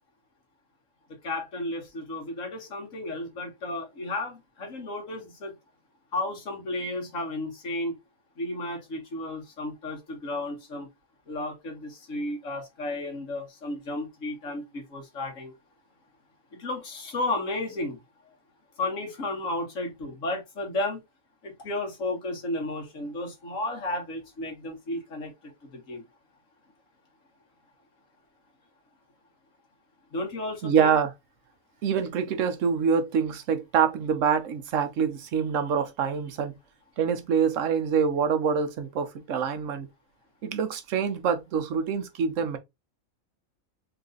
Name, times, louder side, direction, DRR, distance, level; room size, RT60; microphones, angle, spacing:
voice 1, 1.2-5.6 6.1-8.0 8.4-10.9 11.3-15.5 16.6-18.0 18.8-21.0 21.4-26.0 30.1-31.0, left 2 dB, 65° left, 1.7 m, -33 dB
voice 2, 30.6-31.1 31.8-36.5 37.0-39.9 40.4-42.6, right 7 dB, 70° right, 1.0 m, -25 dB
3.8 x 2.6 x 3.8 m
omnidirectional pair, 1.5 m